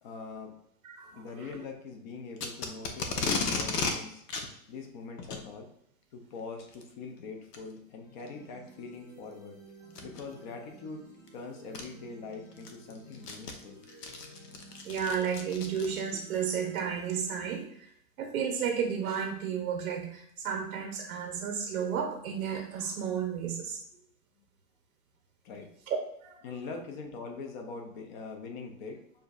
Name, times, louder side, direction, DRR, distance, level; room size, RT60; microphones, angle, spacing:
voice 1, 0.0-0.5 1.1-4.2 4.7-5.7 6.1-11.0 11.3-13.8 25.4-25.7 26.4-29.0, left 4 dB, 30° left, 3 dB, 0.6 m, -43 dB
voice 2, 0.8-1.6 14.8-17.9 18.2-23.8 25.9-26.4, right 7 dB, 65° right, 3 dB, 0.7 m, -33 dB
Packing tape duct tape, 2.4-4.0 4.3-4.5 5.2-5.4 6.6-6.8 7.5-7.6 8.3-8.4 9.9-10.2 11.3-11.4 11.7-11.8 12.3-16.2, left 4 dB, 85° left, 0.9 m, -34 dB
sound 1, 8.0-17.6, right 3 dB, 65° left, 1.7 m, -53 dB
6.6 x 2.7 x 2.4 m, 0.71 s
hypercardioid pair, 145°, 47 cm